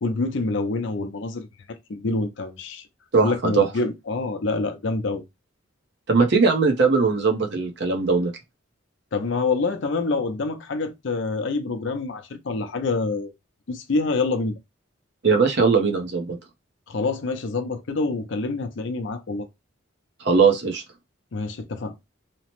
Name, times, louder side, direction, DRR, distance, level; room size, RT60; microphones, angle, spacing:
voice 1, 0.0-2.8 3.2-5.2 9.1-13.3 13.7-14.6 16.9-19.5 21.3-21.9, left 3 dB, 60° left, 0.5 m, -26 dB
voice 2, 3.1-3.7 6.1-8.3 15.2-16.4 20.2-20.8, right 4 dB, 55° right, 0.6 m, -20 dB
2.9 x 2.0 x 2.9 m
head